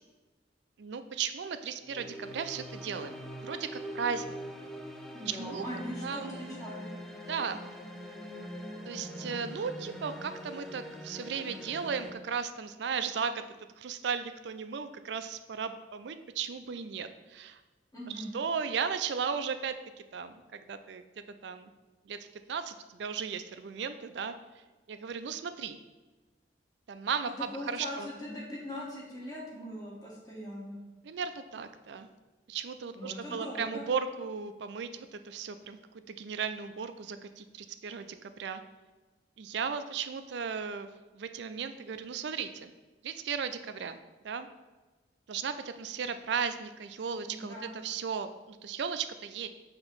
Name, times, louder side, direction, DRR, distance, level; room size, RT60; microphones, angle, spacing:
voice 1, 0.8-4.4 5.3-5.7 6.0-6.6 7.3-7.6 8.9-13.4 13.8-17.6 18.1-19.8 20.1-21.7 22.1-22.2 22.5-24.3 24.9-25.8 26.9-27.3 27.7-28.1 31.0-32.1 32.5-35.8 36.1-38.6 39.4-40.9 41.1-42.7 43.0-44.0 44.2-44.5 45.3-49.5, right 6 dB, 65° right, 10 dB, 0.4 m, -36 dB
sound 1, 1.8-12.1, equal, ahead, 0.4 m, -43 dB
voice 2, 5.1-6.9 17.9-18.3 27.4-30.8 32.9-33.8 47.3-47.7, left 1 dB, 20° left, -5 dB, 1.5 m, -41 dB
6.0 x 2.9 x 5.4 m, 1.2 s
head